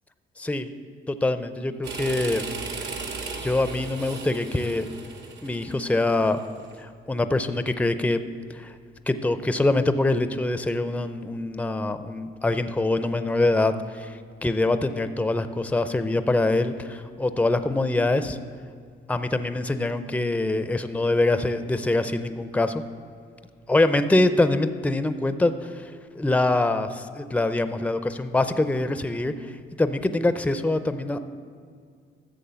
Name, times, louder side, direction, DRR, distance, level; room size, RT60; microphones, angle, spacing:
voice 1, 0.4-0.7 1.1-2.4 3.4-4.9 5.4-6.4 6.8-8.2 8.5-8.7 9.1-18.4 19.1-22.8 23.7-29.5 29.8-31.2, left 2 dB, 5° left, 11 dB, 0.6 m, -24 dB
sound 1, 1.8-6.7, right 4 dB, 60° right, 1.7 m, -36 dB
13.0 x 7.2 x 7.0 m, 2.1 s
cardioid pair, 90°, 20 cm